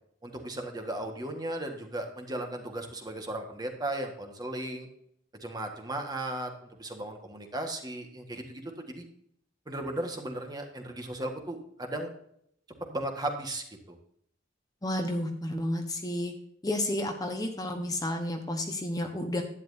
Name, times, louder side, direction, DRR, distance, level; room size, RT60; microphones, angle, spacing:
voice 1, 0.2-4.9 5.4-6.5 6.8-9.0 9.7-12.1 12.9-14.0, right 1 dB, 20° right, 3 dB, 1.5 m, -36 dB
voice 2, 14.8-16.3 16.6-19.4, left 1 dB, 20° left, 4 dB, 1.1 m, -31 dB
11.5 x 10.0 x 2.7 m, 0.68 s
head